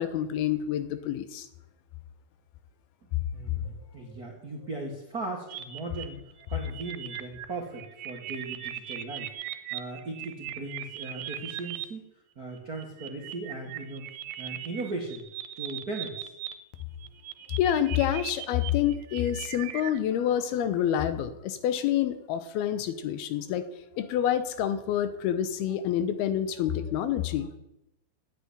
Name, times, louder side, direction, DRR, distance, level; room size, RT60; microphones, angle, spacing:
voice 1, 0.0-1.5 17.6-23.6 24.0-27.5, left 10 dB, 90° left, 11 dB, 3.0 m, -27 dB
voice 2, 3.0-6.2 6.5-12.0 12.3-14.1 14.4-15.2 15.6-16.3, right 2 dB, 45° right, 0 dB, 1.3 m, -38 dB
sound 1, 5.5-11.8 12.5-16.5 16.8-20.0, right 12 dB, 85° right, 2.7 m, -39 dB
10.0 x 8.6 x 9.6 m, 0.88 s
omnidirectional pair, 4.3 m